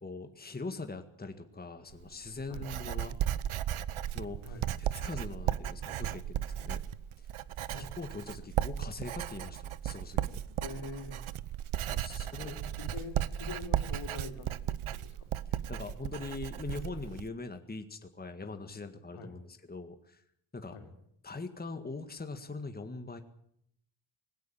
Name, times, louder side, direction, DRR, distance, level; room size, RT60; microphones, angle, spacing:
voice 1, 0.0-3.2 4.1-6.8 7.2-7.3 7.8-10.4 11.9-12.5 15.7-20.2 20.5-20.8 21.2-23.2, left 3 dB, 20° left, 7 dB, 1.9 m, -42 dB
Writing, 1.9-17.3, right 11 dB, 75° right, 1.0 m, -35 dB
voice 2, 10.6-11.3 12.3-15.3 19.1-19.4 20.7-20.9, left 4 dB, 80° left, 4 dB, 4.3 m, -45 dB
20.5 x 16.5 x 8.8 m, 0.70 s
cardioid pair, 100°, 50 cm